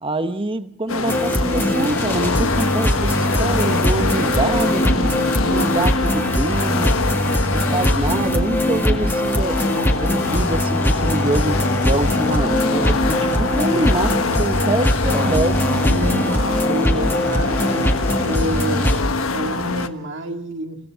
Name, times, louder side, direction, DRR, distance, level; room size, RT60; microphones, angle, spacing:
voice 1, 0.0-5.2 5.4-7.0 7.5-9.6 10.0-15.7, right 2 dB, 25° right, 1.1 m, -25 dB
sound 1, 0.9-19.9, left 3 dB, 80° left, 1.3 m, -25 dB
sound 2, 1.1-19.0, equal, 10° left, 1.9 m, -21 dB
sound 3, 4.0-19.0, left 4 dB, 50° left, 0.8 m, -31 dB
voice 2, 15.9-17.6 18.2-20.8, equal, 60° right, 2.3 m, -28 dB
29.0 x 17.0 x 6.4 m
head